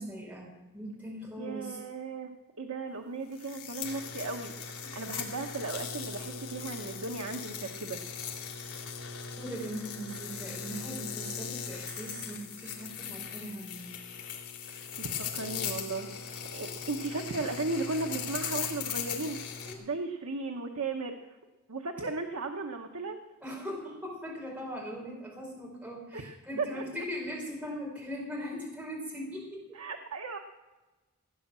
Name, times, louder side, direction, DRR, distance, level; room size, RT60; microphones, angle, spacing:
voice 1, 0.0-1.8 4.8-4.9 9.4-13.9 19.7-19.9 23.4-29.6, equal, 5° right, -3 dB, 5.0 m, -40 dB
voice 2, 1.4-2.3 2.6-8.0 14.7-21.4 21.7-23.2 26.1-27.1 29.7-30.4, right 3 dB, 75° right, 3 dB, 1.2 m, -36 dB
sound 1, 3.3-19.7, left 7 dB, 85° left, 3.6 m, -39 dB
18.0 x 9.8 x 7.5 m, 1.2 s
head